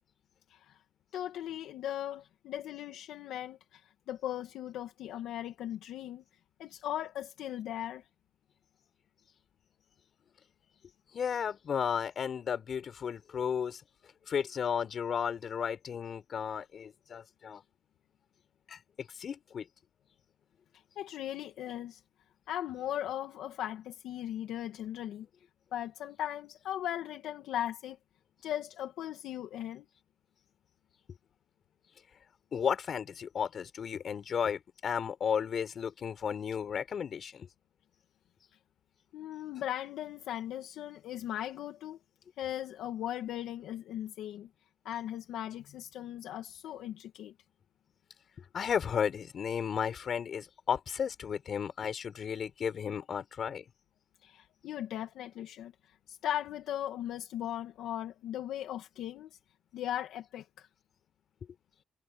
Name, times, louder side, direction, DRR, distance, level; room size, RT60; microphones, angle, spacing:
voice 1, 1.1-6.2 6.6-8.1 20.7-22.0 22.5-25.3 25.7-28.0 28.4-29.9 39.1-42.0 42.4-44.5 44.9-47.3 54.2-59.3 59.7-60.7, left 11 dB, 85° left, 1.9 m, -38 dB
voice 2, 11.1-13.8 14.3-17.6 18.7-19.7 32.5-37.5 48.5-53.6, left 7 dB, 55° left, 5.8 m, -34 dB
cardioid pair, 90°, 0 cm